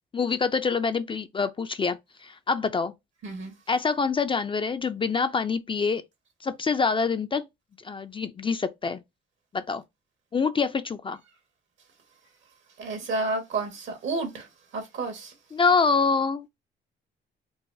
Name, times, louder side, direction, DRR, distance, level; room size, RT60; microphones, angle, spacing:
voice 1, 0.1-2.9 3.7-6.0 6.4-7.5 7.8-9.0 9.5-9.8 10.3-11.2 15.5-16.5, left 5 dB, 25° left, 0.4 m, -26 dB
voice 2, 12.8-14.4 14.7-15.3, right 3 dB, 70° right, 1.4 m, -30 dB
3.8 x 2.3 x 2.6 m
cardioid pair, 90°, 20 cm